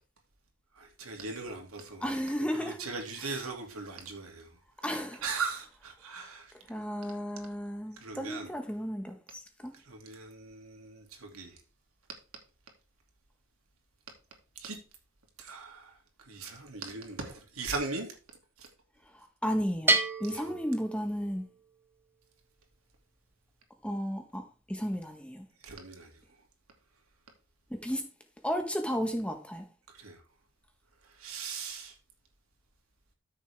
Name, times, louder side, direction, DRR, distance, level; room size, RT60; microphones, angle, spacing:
voice 1, 0.7-2.1 2.5-4.6 5.2-6.5 7.9-8.5 9.7-11.6 14.6-14.8 15.4-16.0 16.3-18.1 18.6-18.7 20.3-20.6 25.6-26.1 29.9-30.2 31.0-31.9, right 4 dB, 85° right, 2.6 m, -39 dB
voice 2, 2.0-2.8 3.2-3.4 4.8-5.2 6.5-9.7 19.1-21.5 23.8-25.5 27.7-28.0 28.4-29.7, equal, 5° left, 1.3 m, -34 dB
Bell, 19.9-21.6, right 2 dB, 10° right, 0.9 m, -30 dB
13.5 x 6.6 x 3.5 m
head